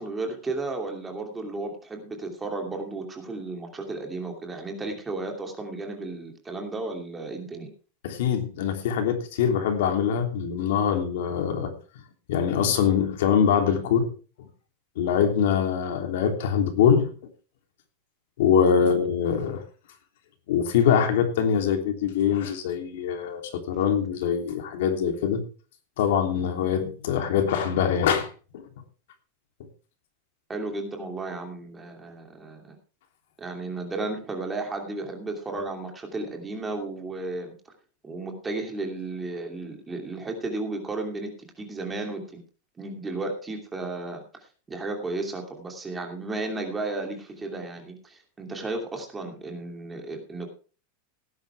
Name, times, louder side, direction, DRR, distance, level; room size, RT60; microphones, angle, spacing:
voice 1, 0.0-7.7 18.8-19.0 30.5-32.8 33.4-37.7 38.0-41.3 41.6-42.4 42.8-44.2 44.7-50.5, right 2 dB, 10° right, 3 dB, 2.9 m, -34 dB
voice 2, 8.0-11.7 12.3-14.1 15.0-17.1 18.4-19.6 20.5-25.4 26.0-28.6, left 7 dB, 65° left, 5 dB, 3.1 m, -23 dB
18.0 x 10.5 x 3.5 m, 0.37 s
supercardioid pair, 170°, 0 cm